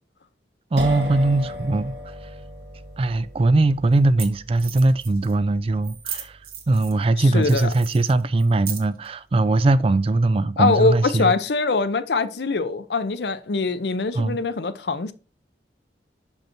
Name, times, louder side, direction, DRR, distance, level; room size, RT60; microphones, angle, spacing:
voice 1, 0.7-2.0 3.0-6.4 6.7-11.3 14.1-14.4, right 2 dB, 30° right, 0.3 m, -20 dB
sound 1, 0.8-8.3, equal, 80° right, 1.6 m, -37 dB
sound 2, 3.1-3.2 3.9-4.0 4.2-4.3 4.6-5.3 5.8-7.0 7.4-9.1, right 8 dB, 55° right, 1.4 m, -36 dB
voice 2, 7.2-7.7 10.6-15.1, left 3 dB, 65° left, 0.7 m, -23 dB
6.0 x 5.4 x 4.4 m
head